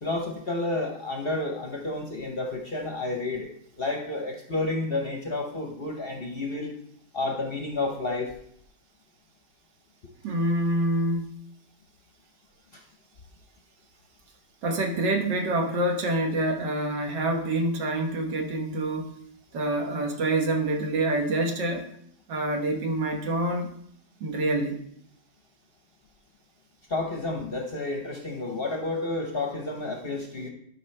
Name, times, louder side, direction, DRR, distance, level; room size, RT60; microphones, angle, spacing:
voice 1, 0.0-3.5 3.8-6.7 7.1-8.3 12.7-12.8 26.9-30.5, left 2 dB, 45° left, 2 dB, 0.8 m, -30 dB
voice 2, 10.2-11.3 14.6-21.9 22.3-23.8 24.2-24.8, right 1 dB, 75° right, 3 dB, 1.8 m, -27 dB
12.0 x 5.2 x 3.2 m, 0.70 s
omnidirectional pair, 1.9 m